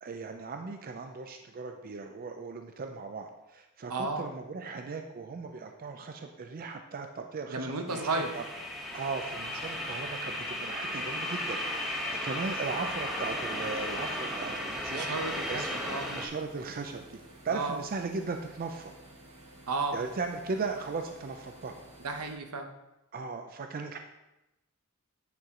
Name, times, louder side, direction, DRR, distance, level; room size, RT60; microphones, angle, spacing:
voice 1, 0.0-8.4 8.9-15.1 15.5-15.6 16.1-18.9 19.9-21.8 23.1-24.0, right 4 dB, 40° right, 5 dB, 0.4 m, -37 dB
voice 2, 3.9-4.3 7.5-8.3 14.9-16.1 17.5-17.8 19.7-20.0 22.0-22.7, right 3 dB, 80° right, 5 dB, 0.9 m, -33 dB
sound 1, 7.9-16.3, left 1 dB, ahead, 1.1 m, -35 dB
sound 2, 12.3-22.3, right 1 dB, 65° right, 1.4 m, -53 dB
9.2 x 4.5 x 3.7 m, 0.95 s
head